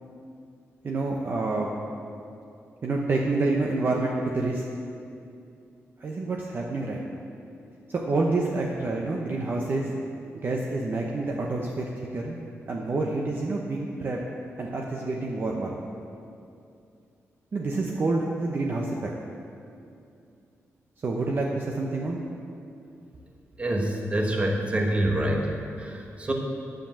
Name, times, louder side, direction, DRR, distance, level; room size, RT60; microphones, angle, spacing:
voice 1, 0.8-1.7 2.8-4.6 6.0-7.2 7.9-9.9 10.4-12.4 12.7-14.2 14.6-15.7 17.5-19.1 21.0-22.2, right 3 dB, 45° right, -1 dB, 0.9 m, -28 dB
voice 2, 23.6-26.3, right 1 dB, 25° right, 1 dB, 1.3 m, -26 dB
10.0 x 7.8 x 7.4 m, 2.5 s
wide cardioid pair, 160°, 5 cm